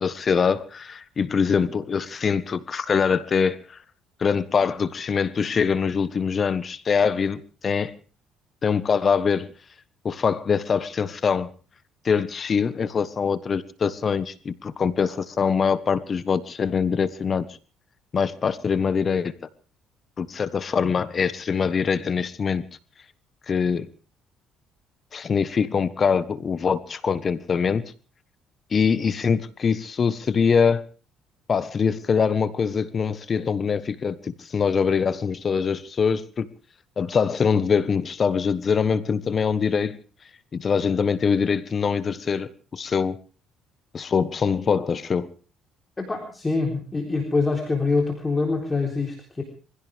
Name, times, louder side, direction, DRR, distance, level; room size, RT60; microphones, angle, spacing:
voice 1, 0.0-3.8 4.2-7.9 8.6-9.5 10.0-11.5 12.0-17.5 18.1-19.3 20.2-22.7 23.5-23.9 25.1-27.8 28.7-30.8 31.5-36.5 37.0-40.0 40.5-43.2 43.9-45.3, left 6 dB, 35° left, 1.3 m, -23 dB
voice 2, 46.0-49.4, left 3 dB, 20° left, 3.8 m, -25 dB
24.5 x 16.0 x 3.5 m
cardioid pair, 115°, 0 cm